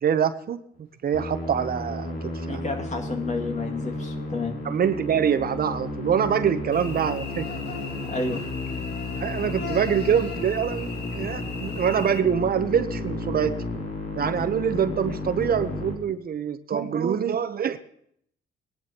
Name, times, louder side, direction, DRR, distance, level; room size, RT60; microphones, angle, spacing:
voice 1, 0.0-2.6 4.6-7.5 9.2-13.6 14.1-17.8, right 8 dB, 50° right, 10 dB, 0.8 m, -25 dB
Musical instrument, 1.1-15.9, left 2 dB, 75° left, 3.2 m, -33 dB
voice 2, 2.5-4.6 8.0-8.4, left 3 dB, 35° left, 4 dB, 2.2 m, -30 dB
Cricket / Buzz, 6.7-12.2, left 3 dB, 55° left, 1.7 m, -38 dB
20.0 x 11.0 x 2.9 m, 0.67 s
cardioid pair, 90°, 20 cm